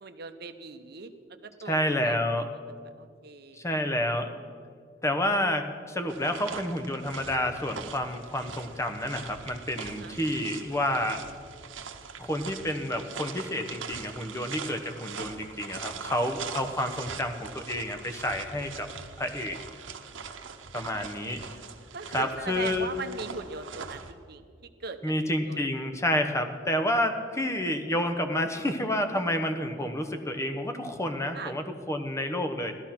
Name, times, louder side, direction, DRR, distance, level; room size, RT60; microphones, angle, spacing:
voice 1, 0.0-2.2 3.0-3.6 9.8-10.2 20.9-21.1 21.9-24.5 24.8-25.0 25.5-25.6 31.3-31.5, right 4 dB, 55° right, 8 dB, 0.9 m, -40 dB
voice 2, 1.7-2.5 3.5-4.4 5.0-11.2 12.2-18.9 19.2-19.6 20.7-21.4 22.1-22.9 25.0-32.7, left 1 dB, 15° left, 6 dB, 1.0 m, -29 dB
sound 1, 6.1-24.1, right 5 dB, 80° right, 1.1 m, -42 dB
16.0 x 13.5 x 5.9 m, 2.1 s
head